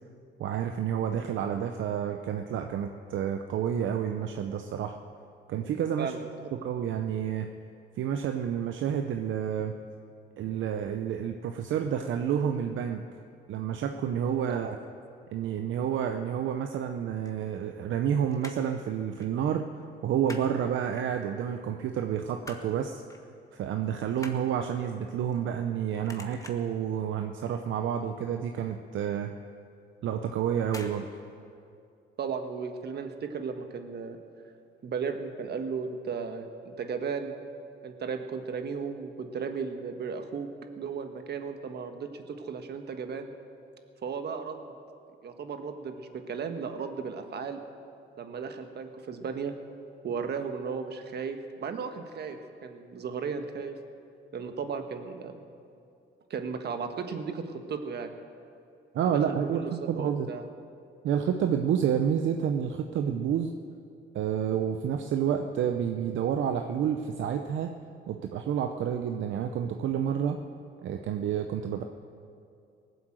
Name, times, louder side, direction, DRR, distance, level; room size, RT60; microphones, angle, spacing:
voice 1, 0.4-5.0 5.5-6.2 6.6-7.5 8.0-9.8 10.4-13.0 13.5-14.7 15.3-19.7 20.0-23.0 23.5-29.3 30.0-31.1 58.9-60.3 61.0-63.5 64.1-67.7 68.1-70.4 70.8-71.8, right 8 dB, 75° right, 5 dB, 0.7 m, -29 dB
voice 2, 6.0-6.3 14.5-14.8 32.2-34.2 34.8-36.5 36.8-37.3 37.8-40.5 40.8-43.3 44.0-44.7 45.2-47.6 48.2-49.5 50.0-53.8 54.3-55.4 56.3-58.1 59.0-60.4, right 5 dB, 55° right, 7 dB, 1.4 m, -35 dB
sound 1, 17.3-18.0 18.3-18.8 19.2-19.4 19.6-20.5 20.9-21.5 21.9-22.8 23.1-23.3 23.6-25.8 26.0-26.8 27.2-27.6 27.8-27.9 28.3-28.4 28.8-28.9 29.8-30.0 30.7-31.0 31.3-31.4, left 2 dB, 15° left, 1.5 m, -46 dB
18.5 x 7.9 x 7.8 m, 2.4 s
cardioid pair, 90°, 20 cm